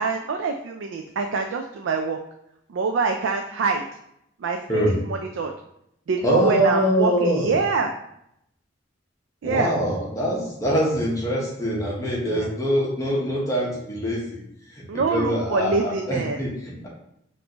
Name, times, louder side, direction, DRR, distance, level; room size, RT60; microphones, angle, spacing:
voice 1, 0.0-2.2 2.7-3.8 4.4-5.5 6.1-7.9 9.4-9.7 12.3-12.5 14.9-16.4, right 4 dB, 85° right, 4 dB, 0.4 m, -25 dB
voice 2, 6.2-7.5 9.4-14.4 14.9-16.9, equal, 20° left, -5 dB, 1.0 m, -24 dB
5.2 x 2.6 x 2.9 m, 0.77 s
head